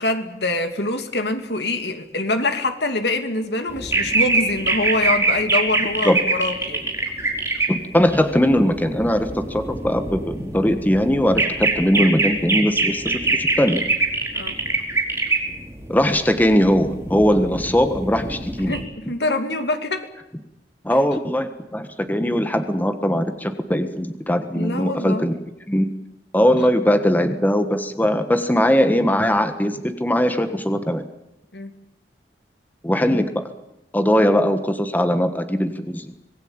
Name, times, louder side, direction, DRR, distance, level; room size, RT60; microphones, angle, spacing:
voice 1, 0.0-6.9 14.3-14.6 18.7-20.1 24.5-25.3 31.5-31.7 34.2-34.3, left 2 dB, 70° left, 7 dB, 2.6 m, -25 dB
sound 1, 3.7-7.7 7.9-18.8, right 3 dB, 15° right, 4.6 m, -24 dB
voice 2, 7.7-13.8 15.9-18.7 20.8-25.3 25.7-25.9 26.3-31.0 32.8-33.5 33.9-36.1, equal, 10° left, 8 dB, 1.4 m, -20 dB
25.5 x 20.0 x 8.9 m, 0.92 s
head